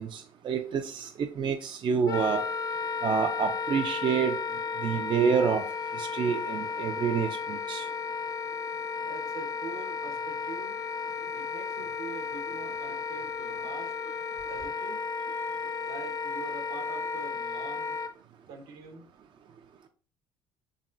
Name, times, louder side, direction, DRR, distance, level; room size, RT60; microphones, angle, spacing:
voice 1, 0.0-2.4 3.0-4.4 4.8-5.6 5.9-7.9, right 6 dB, 40° right, 0.4 m, -28 dB
Wind instrument woodwind instrument, 2.0-18.1, left 5 dB, 30° left, 0.4 m, -34 dB
voice 2, 9.0-10.8 11.3-13.9 14.4-15.1 15.8-18.0 18.5-19.1, right 5 dB, 70° right, 0.9 m, -44 dB
4.0 x 3.5 x 2.5 m
hypercardioid pair, 60°, 13 cm